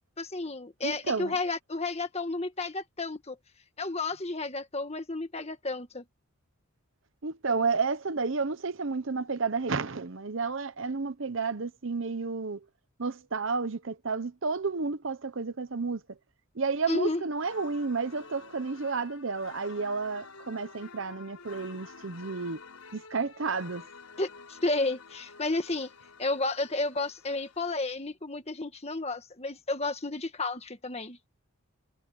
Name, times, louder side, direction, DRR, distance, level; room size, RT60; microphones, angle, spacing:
voice 1, 0.2-3.4 3.8-6.0 16.9-17.2 24.2-25.9 26.2-31.2, left 2 dB, 30° left, 1.8 m, -32 dB
voice 2, 0.8-1.3 7.2-12.6 13.0-16.0 16.6-22.6 22.9-23.8, right 4 dB, 60° right, 0.8 m, -31 dB
sound 1, 17.4-27.8, left 5 dB, 90° left, 5.1 m, -50 dB
head